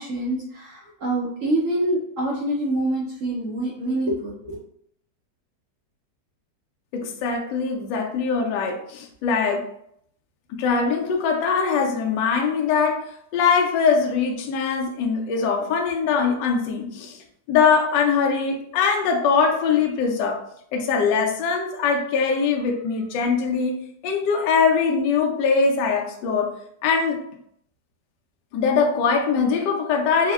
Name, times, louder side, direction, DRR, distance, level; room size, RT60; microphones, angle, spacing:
voice 1, 0.0-4.6, right 1 dB, 70° right, -5 dB, 0.8 m, -26 dB
voice 2, 6.9-9.7 10.6-17.2 17.5-20.4 20.7-26.5 26.8-27.2 28.5-30.3, left 5 dB, 80° left, 1 dB, 1.2 m, -22 dB
4.0 x 2.1 x 2.3 m, 0.70 s
omnidirectional pair, 1.9 m